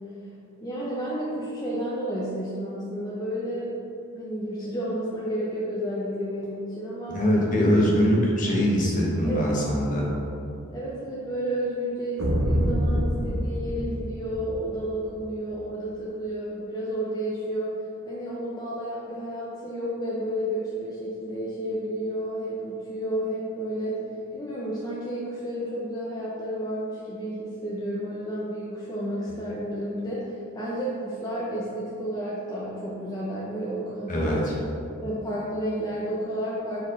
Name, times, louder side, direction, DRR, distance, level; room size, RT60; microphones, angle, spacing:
voice 1, 0.6-3.8 4.1-7.2 9.2-9.6 10.7-17.7 18.0-24.0 24.3-34.4 35.0-36.9, equal, 20° left, -7 dB, 0.7 m, -31 dB
voice 2, 7.1-10.1 34.1-34.6, equal, 40° left, -3 dB, 1.2 m, -22 dB
sound 1, 12.2-14.8, equal, 60° right, 0.8 m, -26 dB
4.6 x 4.4 x 5.6 m, 2.7 s
head